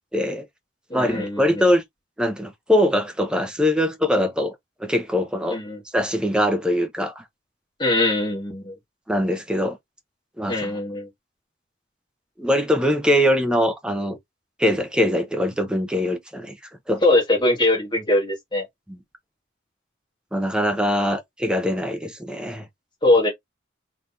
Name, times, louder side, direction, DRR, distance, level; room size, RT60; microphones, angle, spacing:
voice 1, 0.1-0.5 0.9-1.8 2.2-5.6 5.9-7.2 9.1-9.8 10.4-10.8 12.4-14.2 14.6-16.6 16.9-17.0 20.3-22.7, equal, 5° right, 0.7 m, -22 dB
voice 2, 0.9-1.6 5.5-5.8 7.8-8.8 10.5-11.1 17.0-18.6 23.0-23.3, left 2 dB, 25° left, 1.6 m, -21 dB
4.0 x 3.3 x 2.7 m
head